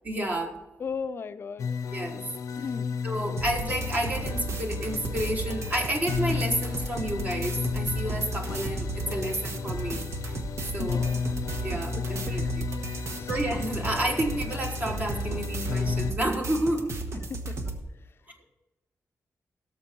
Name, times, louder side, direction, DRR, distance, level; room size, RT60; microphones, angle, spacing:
voice 1, 0.1-0.6 1.9-2.2 3.0-10.0 10.7-11.0 11.6-12.5 13.3-16.9, right 1 dB, 30° right, 2 dB, 1.4 m, -30 dB
voice 2, 0.8-1.7 2.6-2.9 10.8-11.2 11.9-12.4 13.0-13.3 17.3-17.6, left 5 dB, 45° left, 11 dB, 0.5 m, -36 dB
sound 1, 1.6-16.1, left 6 dB, 85° left, 0.7 m, -34 dB
sound 2, 3.4-17.8, right 2 dB, 55° right, 1.2 m, -34 dB
16.5 x 6.8 x 4.5 m, 1.0 s
wide cardioid pair, 170°, 6 cm